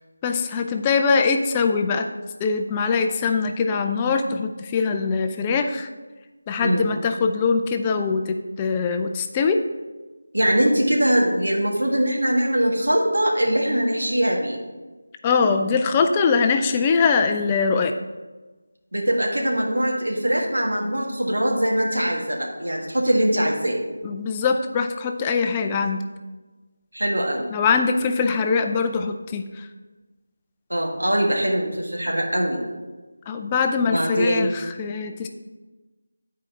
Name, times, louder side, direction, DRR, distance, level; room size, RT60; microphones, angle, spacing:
voice 1, 0.2-2.1 2.4-5.9 6.5-9.7 15.2-18.0 24.0-26.0 27.5-29.7 33.3-35.3, left 5 dB, 15° left, 5 dB, 0.4 m, -22 dB
voice 2, 10.3-14.6 18.9-23.8 26.9-27.5 30.7-32.6 33.8-34.5, right 1 dB, 75° right, -1 dB, 1.7 m, -22 dB
9.5 x 4.7 x 4.1 m, 1.2 s
figure-of-eight pair, 165°, 0 cm